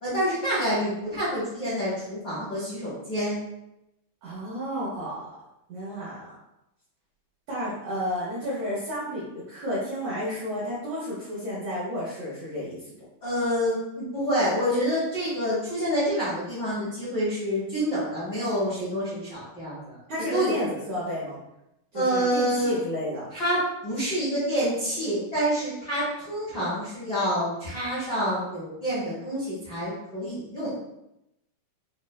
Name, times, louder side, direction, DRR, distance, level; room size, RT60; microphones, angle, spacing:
voice 1, 0.0-3.4 13.2-20.0 20.3-20.5 21.9-22.8 23.3-30.7, equal, 80° left, -10 dB, 0.9 m, -27 dB
voice 2, 4.2-5.2 5.7-6.3 7.5-12.9 20.1-21.4 21.9-23.3, equal, 90° right, -7 dB, 1.5 m, -31 dB
5.9 x 2.1 x 2.3 m, 0.86 s
omnidirectional pair, 4.5 m